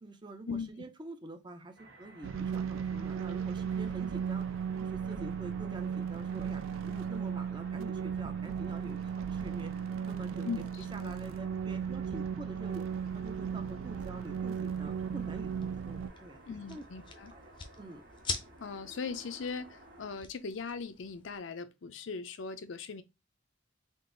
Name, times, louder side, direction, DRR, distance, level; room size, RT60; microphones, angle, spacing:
voice 1, 0.0-4.5 4.8-9.7 10.1-10.5 10.9-12.9 13.1-16.8 17.3-17.5 17.8-18.0, right 2 dB, 25° right, 0.5 m, -46 dB
sound 1, 1.8-20.2, right 1 dB, 55° right, 1.2 m, -54 dB
sound 2, 2.2-16.1, right 7 dB, 90° right, 0.4 m, -36 dB
sound 3, 14.6-21.4, left 5 dB, 25° left, 0.5 m, -45 dB
voice 2, 16.5-17.3 18.6-23.0, left 5 dB, 70° left, 0.5 m, -39 dB
3.7 x 2.5 x 3.8 m
head